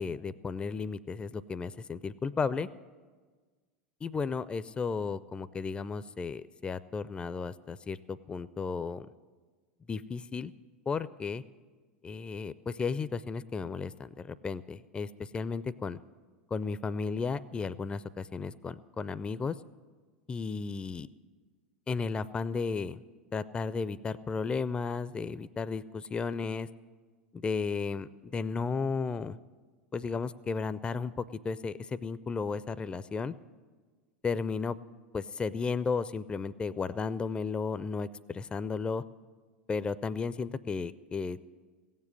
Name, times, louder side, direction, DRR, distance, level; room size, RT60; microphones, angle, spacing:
voice 1, 0.0-2.7 4.0-9.1 9.9-10.5 10.9-11.4 12.0-16.0 16.5-19.6 20.3-21.1 21.9-23.0 23.3-26.7 27.3-29.4 29.9-33.3 34.2-34.8 35.1-39.0 39.7-41.4, left 5 dB, 15° left, 16 dB, 0.4 m, -34 dB
16.5 x 7.4 x 9.7 m, 1.4 s
figure-of-eight pair, 85°, 6 cm